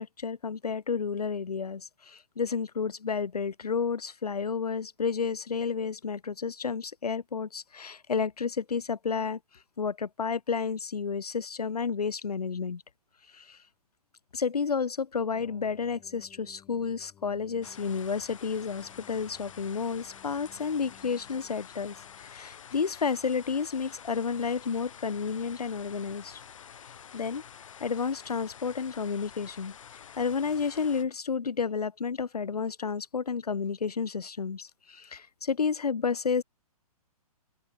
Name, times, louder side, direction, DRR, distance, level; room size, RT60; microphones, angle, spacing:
voice 1, 0.0-9.4 9.8-12.8 13.3-13.6 14.3-26.4 27.1-27.4 27.8-29.7 30.2-36.4, left 5 dB, 80° left, 0.6 m, -31 dB
sound 1, 15.3-22.4, left 11 dB, 15° left, 6.0 m, -58 dB
sound 2, 17.6-31.0, left 8 dB, 55° left, 4.2 m, -49 dB
open air
figure-of-eight pair, 125°, 20 cm